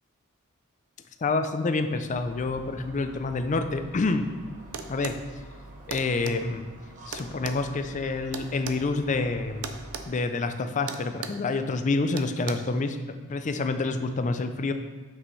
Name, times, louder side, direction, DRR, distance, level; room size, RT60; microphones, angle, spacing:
voice 1, 1.2-4.3 4.9-5.1 5.9-6.7 7.1-9.7 10.1-13.0 13.3-14.7, left 3 dB, 35° left, 8 dB, 0.4 m, -27 dB
sound 1, 2.1-10.1, right 1 dB, 35° right, 1.0 m, -47 dB
sound 2, 4.7-5.2 5.9-6.4 7.1-8.8 9.6-10.1 10.3-10.5 10.9-11.4 12.2-12.5, right 6 dB, 70° right, 0.5 m, -36 dB
7.5 x 6.0 x 3.2 m, 1.4 s
head